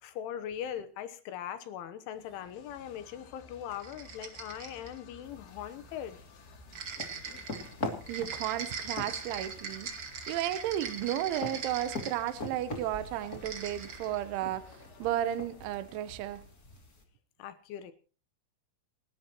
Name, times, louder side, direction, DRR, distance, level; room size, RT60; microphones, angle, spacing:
voice 1, 0.0-6.2 17.4-17.9, left 10 dB, 80° left, 3.5 m, -40 dB
sound 1, 2.1-16.8, left 5 dB, 60° left, 4.1 m, -55 dB
sound 2, 3.7-5.0 6.7-12.6 13.3-14.2, right 6 dB, 45° right, 1.8 m, -41 dB
sound 3, 5.2-17.0, left 2 dB, 30° left, 1.8 m, -44 dB
voice 2, 8.1-9.9 10.3-16.4, right 12 dB, 80° right, 3.4 m, -33 dB
28.5 x 13.0 x 3.0 m
omnidirectional pair, 5.6 m